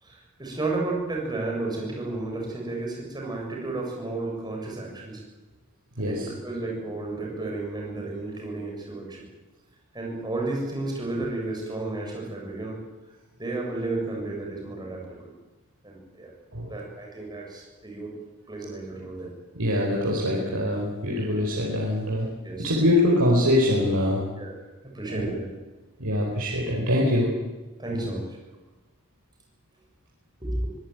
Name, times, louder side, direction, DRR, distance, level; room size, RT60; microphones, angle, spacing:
voice 1, 0.0-5.2 6.0-9.2 9.9-12.8 13.4-15.3 15.8-16.3 16.7-18.1 18.5-19.3 22.4-22.7 24.4-24.5 24.9-25.5 27.8-28.3 30.4-30.7, right 2 dB, 20° right, -1 dB, 7.2 m, -32 dB
voice 2, 19.5-22.3 22.6-24.2 25.1-25.3 26.0-27.3 28.0-28.1, left 1 dB, 85° right, -3 dB, 4.8 m, -23 dB
24.0 x 17.5 x 9.3 m, 1.2 s
head